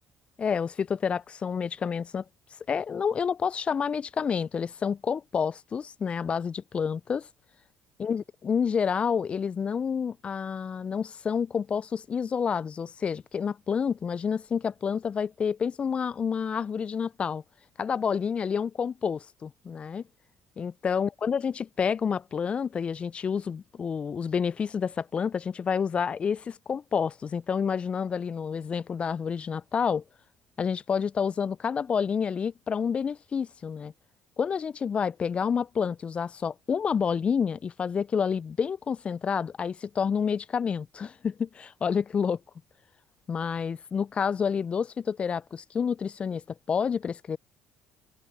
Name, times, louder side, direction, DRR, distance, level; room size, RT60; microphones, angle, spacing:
voice 1, 0.4-2.2 2.7-7.3 8.0-17.4 17.8-20.0 20.6-30.0 30.6-33.9 34.4-42.4 43.3-46.4 46.7-47.4, left 6 dB, 40° left, 0.5 m, -29 dB
open air
hypercardioid pair, 60°, 3 cm